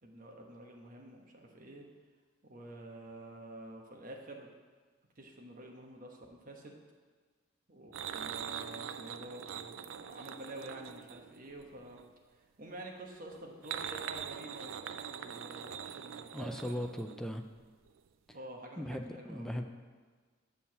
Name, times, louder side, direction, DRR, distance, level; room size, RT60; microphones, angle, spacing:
voice 1, 0.0-1.9 2.4-4.5 5.2-6.8 7.7-12.0 12.6-16.8 18.3-19.6, right 1 dB, 45° right, 1 dB, 1.1 m, -49 dB
sound 1, 7.9-12.1 13.3-17.6 17.9-18.0 18.3-18.4, right 8 dB, 80° right, 0.4 m, -43 dB
voice 2, 16.3-17.4 18.8-19.6, equal, 5° left, 5 dB, 0.4 m, -38 dB
7.0 x 4.6 x 6.9 m, 1.5 s
head